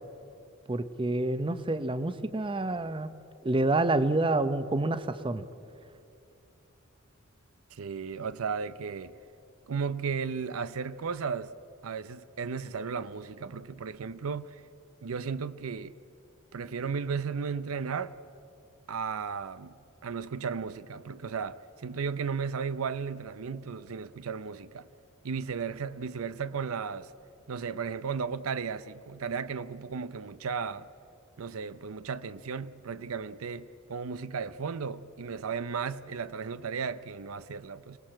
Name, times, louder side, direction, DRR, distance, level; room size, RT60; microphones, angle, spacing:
voice 1, 0.7-3.1 3.4-5.5, right 2 dB, 25° right, 0.7 m, -28 dB
voice 2, 7.7-9.1 9.7-11.5 11.8-14.6 15.0-15.9 16.5-18.1 18.9-24.9 25.2-27.1 27.5-30.9 31.4-38.0, right 5 dB, 85° right, 0.6 m, -35 dB
26.0 x 19.0 x 7.7 m
head